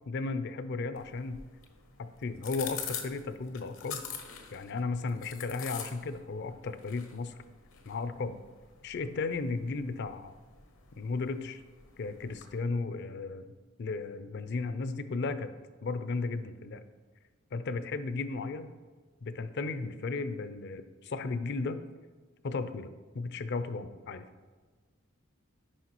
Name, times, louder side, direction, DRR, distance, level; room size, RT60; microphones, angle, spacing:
voice 1, 0.1-1.4 2.0-4.0 4.5-7.3 7.9-8.4 8.8-10.3 11.0-11.6 12.0-13.4 13.8-15.5 15.8-16.8 17.5-18.7 19.2-21.8 22.4-22.9 23.1-24.3, left 3 dB, 55° left, 11 dB, 0.5 m, -35 dB
sound 1, 0.9-12.6, left 7 dB, 75° left, 0.9 m, -46 dB
9.7 x 5.2 x 3.0 m, 1.4 s
head